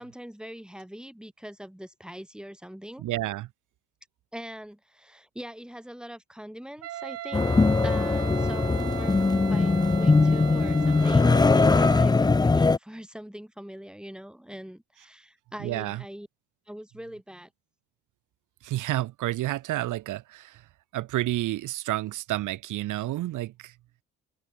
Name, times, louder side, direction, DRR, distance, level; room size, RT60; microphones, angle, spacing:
voice 1, 0.0-3.0 4.3-7.5 7.8-16.3 16.7-17.5, equal, 5° right, 4.7 m, -42 dB
voice 2, 3.0-3.5 15.6-16.0 18.6-20.6 20.9-23.7, right 15 dB, 85° right, 1.6 m, -30 dB
Wind instrument woodwind instrument, 6.8-12.2, right 13 dB, 55° right, 0.5 m, -37 dB
sound 1, 7.3-12.8, left 3 dB, 15° left, 0.5 m, -21 dB
cardioid pair, 90°, 30 cm